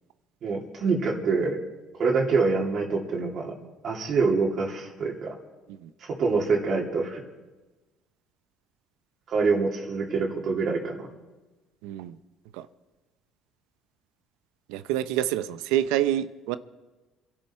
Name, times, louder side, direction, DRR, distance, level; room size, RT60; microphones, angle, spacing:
voice 1, 0.4-1.6 2.0-3.5 3.8-5.3 6.0-7.2 9.3-11.0, right 4 dB, 55° right, -2 dB, 2.9 m, -25 dB
voice 2, 11.8-12.2 12.5-12.7 14.7-16.6, right 12 dB, 90° right, 13 dB, 0.7 m, -27 dB
26.5 x 11.5 x 4.4 m, 1.2 s
supercardioid pair, 90°, 0 cm